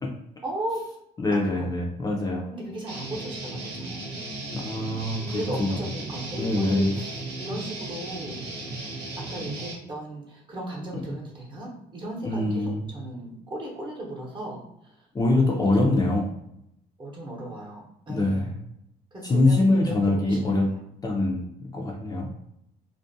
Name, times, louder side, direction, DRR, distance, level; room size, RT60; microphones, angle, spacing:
voice 1, 0.4-0.8 1.4-1.7 2.5-4.4 5.3-8.5 9.2-15.0 15.3-15.7 17.0-18.5 19.1-20.8, right 1 dB, 30° right, -2 dB, 0.8 m, -36 dB
voice 2, 1.2-2.5 4.5-5.8 6.4-7.0 12.2-12.9 15.1-16.3 18.1-18.5 19.2-20.7 21.0-22.3, left 2 dB, 25° left, -1 dB, 0.4 m, -24 dB
Guitar, 2.9-9.7, right 2 dB, 80° right, 1.0 m, -36 dB
2.4 x 2.1 x 2.6 m, 0.78 s
cardioid pair, 110°, 17 cm